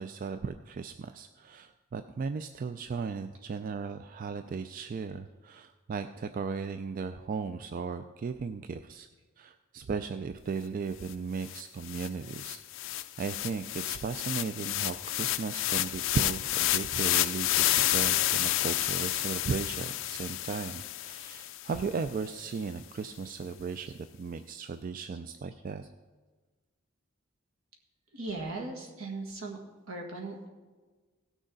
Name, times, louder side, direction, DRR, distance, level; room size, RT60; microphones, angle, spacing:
voice 1, 0.0-9.1 9.4-12.6 13.2-25.8, right 5 dB, 40° right, 9 dB, 0.3 m, -36 dB
sound 1, 11.1-11.2 11.4-21.8, left 14 dB, 65° left, 0.4 m, -30 dB
voice 2, 28.1-29.6 29.9-30.5, right 2 dB, 75° right, 0 dB, 1.8 m, -38 dB
17.0 x 6.3 x 3.9 m, 1.3 s
head